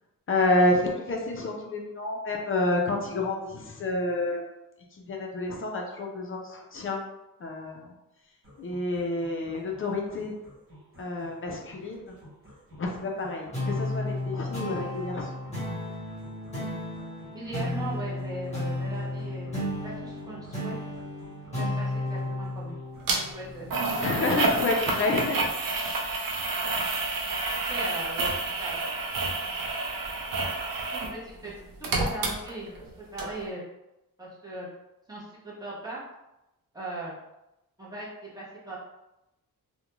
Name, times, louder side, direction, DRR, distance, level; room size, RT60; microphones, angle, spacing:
voice 1, 0.3-4.5 4.9-7.1 7.4-7.9 8.6-10.4 11.0-12.2 12.8-15.3 24.0-25.4, left 2 dB, 40° left, 0 dB, 0.4 m, -29 dB
sound 1, 8.4-24.4, equal, 40° right, 0.9 m, -53 dB
sound 2, 13.5-24.4, left 1 dB, 20° left, 1.0 m, -33 dB
voice 2, 17.3-19.5 19.8-20.7 21.6-22.8 23.1-24.1 27.7-28.3 28.6-28.9 30.9-31.5 31.8-32.7 33.0-33.6 34.2-34.7 35.1-36.0 36.7-37.2 37.8-38.8, right 2 dB, 10° right, -7 dB, 0.7 m, -39 dB
sound 3, 23.1-23.2 23.7-31.2 31.4-32.9 33.2-33.3, right 3 dB, 75° right, 0.5 m, -29 dB
2.4 x 2.1 x 2.9 m, 0.93 s
wide cardioid pair, 160°, 34 cm